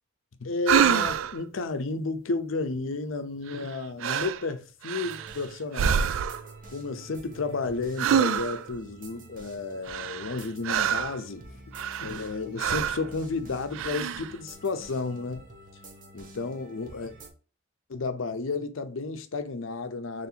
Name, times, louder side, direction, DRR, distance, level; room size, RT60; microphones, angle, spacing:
voice 1, 0.4-6.0 6.7-11.4 12.0-15.4 16.1-17.1 17.9-20.3, left 3 dB, 85° left, 0.6 m, -32 dB
sound 1, 0.7-1.4 3.5-3.7 4.0-4.4 4.8-5.4 5.7-6.5 8.0-8.7 9.9-11.2 11.7-12.3 12.6-13.1 13.7-14.3, right 8 dB, 80° right, 0.3 m, -26 dB
sound 2, 5.0-17.3, right 2 dB, 45° right, 0.9 m, -48 dB
4.2 x 3.2 x 2.8 m
head